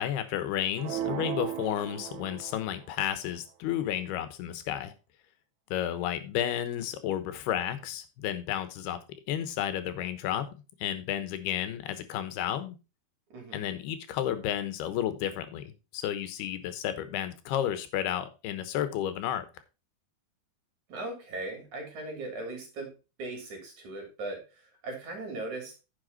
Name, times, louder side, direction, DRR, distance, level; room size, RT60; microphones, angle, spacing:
voice 1, 0.0-4.9 5.7-9.0 9.3-10.5 10.8-12.8 13.5-19.5, left 11 dB, 90° left, 3.1 m, -32 dB
sound 1, 0.8-2.9, right 11 dB, 75° right, 1.8 m, -36 dB
voice 2, 13.3-13.6 20.9-22.9 23.2-25.8, right 2 dB, 50° right, 4.7 m, -39 dB
10.0 x 6.9 x 4.0 m
omnidirectional pair, 4.5 m